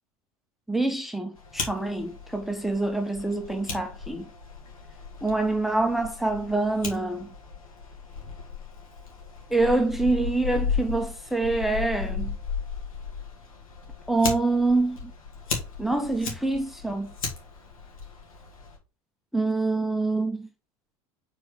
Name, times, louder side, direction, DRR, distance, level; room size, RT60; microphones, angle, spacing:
voice 1, 0.7-4.3 5.2-7.3 9.5-12.4 14.1-15.1 15.8-17.1 19.3-20.5, right 2 dB, ahead, 0.9 m, -26 dB
Fire, 1.4-18.8, left 5 dB, 75° left, 2.1 m, -36 dB
4.8 x 4.2 x 4.9 m
figure-of-eight pair, 80°, 18 cm